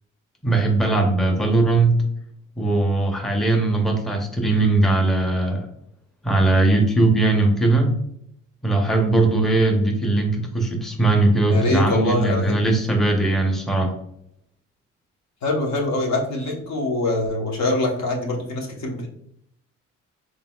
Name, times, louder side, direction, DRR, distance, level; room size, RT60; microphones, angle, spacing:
voice 1, 0.4-2.0 2.6-5.7 6.2-7.9 8.6-13.9, right 2 dB, ahead, 2 dB, 0.6 m, -19 dB
voice 2, 11.5-12.6 15.4-19.1, left 1 dB, 65° left, 0 dB, 1.1 m, -23 dB
3.9 x 3.8 x 2.3 m, 0.73 s
cardioid pair, 90°, 30 cm